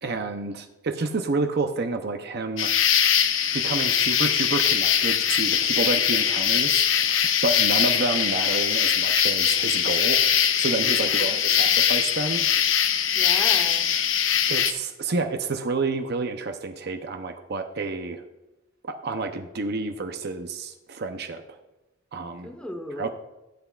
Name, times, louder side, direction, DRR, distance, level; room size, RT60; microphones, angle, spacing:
voice 1, 0.0-2.7 3.5-12.5 14.5-18.2 18.8-21.6 22.1-22.5 23.0-23.1, right 3 dB, 55° right, 7 dB, 0.7 m, -29 dB
sound 1, 2.6-14.7, left 9 dB, 70° left, 0.7 m, -22 dB
voice 2, 11.1-11.6 13.1-13.9 22.4-23.1, left 1 dB, 5° left, 3 dB, 1.1 m, -37 dB
15.0 x 8.0 x 2.4 m, 1.0 s
head